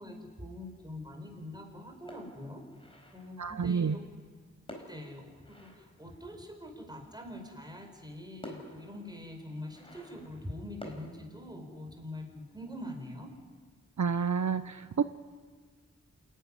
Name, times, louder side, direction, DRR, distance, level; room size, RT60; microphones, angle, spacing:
voice 1, 0.0-2.6 3.1-4.1 4.7-13.3, left 1 dB, 15° right, 2 dB, 5.2 m, -44 dB
sound 1, 2.1-3.5 4.7-6.6 7.8-7.9 8.4-11.1, left 1 dB, 20° left, 4.4 m, -50 dB
voice 2, 3.4-4.0 14.0-15.0, right 6 dB, 70° right, 12 dB, 0.6 m, -29 dB
28.0 x 11.0 x 9.9 m, 1.5 s
wide cardioid pair, 50°, 30 cm